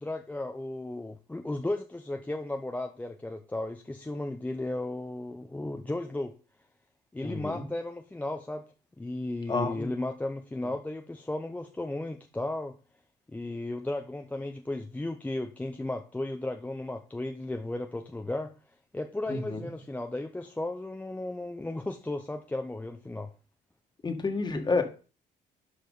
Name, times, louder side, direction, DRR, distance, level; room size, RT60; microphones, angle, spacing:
voice 1, 0.0-6.3 7.1-8.6 9.0-12.7 13.3-18.5 18.9-23.3, left 2 dB, 10° left, 0.7 m, -35 dB
voice 2, 7.2-7.7 9.5-9.9 19.3-19.6 24.0-24.8, left 3 dB, 25° left, 1.7 m, -29 dB
11.5 x 4.8 x 4.0 m
cardioid pair, 110°, 17 cm